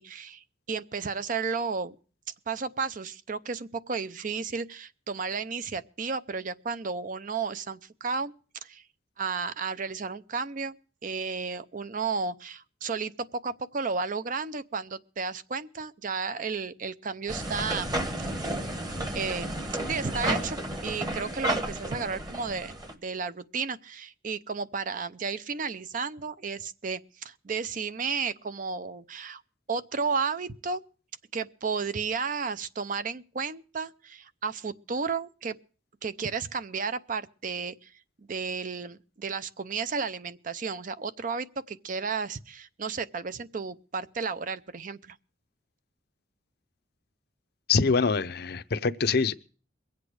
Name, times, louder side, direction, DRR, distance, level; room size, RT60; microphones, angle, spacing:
voice 1, 0.0-2.0 2.5-8.3 8.6-8.8 9.2-10.8 11.0-18.5 19.1-19.6 19.8-22.8 23.0-29.4 29.7-30.8 31.3-35.6 36.0-37.9 38.2-45.2, right 5 dB, 45° right, 0.5 m, -33 dB
sound 1, 17.3-22.9, right 1 dB, 20° right, 1.2 m, -32 dB
voice 2, 47.7-49.4, left 5 dB, 55° left, 0.6 m, -24 dB
22.5 x 8.2 x 4.8 m
head